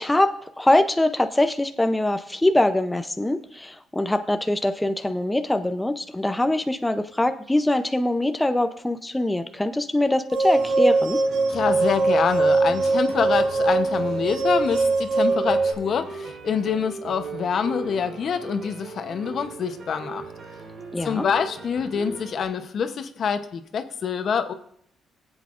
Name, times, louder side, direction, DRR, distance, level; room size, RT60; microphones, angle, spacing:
voice 1, 0.0-11.2 20.9-21.2, left 1 dB, 10° left, 7 dB, 0.5 m, -23 dB
sound 1, 10.3-15.7, right 3 dB, 85° right, 1.0 m, -21 dB
sound 2, 10.6-22.4, right 3 dB, 55° right, 3.2 m, -39 dB
voice 2, 11.5-20.3 21.0-24.5, left 7 dB, 55° left, 9 dB, 0.8 m, -26 dB
22.5 x 8.0 x 2.5 m, 0.69 s
cardioid pair, 90°, 0 cm